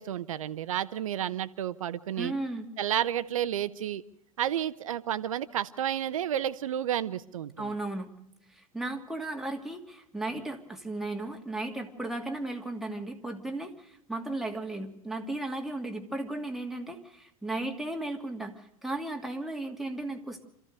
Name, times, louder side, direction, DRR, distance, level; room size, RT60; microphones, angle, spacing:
voice 1, 0.0-2.3 2.8-4.0 4.4-7.7, right 10 dB, 75° right, 15 dB, 0.9 m, -31 dB
voice 2, 2.2-2.6 7.6-8.1 8.5-20.4, right 2 dB, ahead, 2 dB, 2.7 m, -35 dB
26.5 x 14.5 x 6.7 m, 0.78 s
figure-of-eight pair, 80°, 18 cm